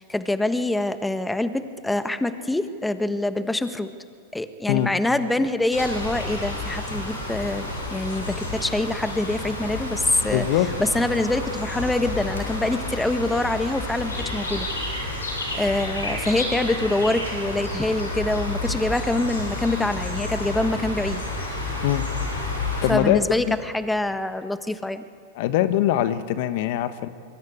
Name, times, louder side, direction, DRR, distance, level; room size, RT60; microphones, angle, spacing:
voice 1, 0.0-3.9 4.3-10.5 10.8-15.1 15.5-21.2 22.9-25.0, left 2 dB, 5° left, 11 dB, 1.4 m, -25 dB
sound 1, 5.7-22.9, left 2 dB, 90° left, 7.0 m, -30 dB
voice 2, 10.3-10.7 21.8-22.0 22.8-23.2 23.5-23.6 25.3-27.1, left 13 dB, 60° left, 13 dB, 1.2 m, -22 dB
25.5 x 23.0 x 8.7 m, 2.1 s
hypercardioid pair, 100°, 0 cm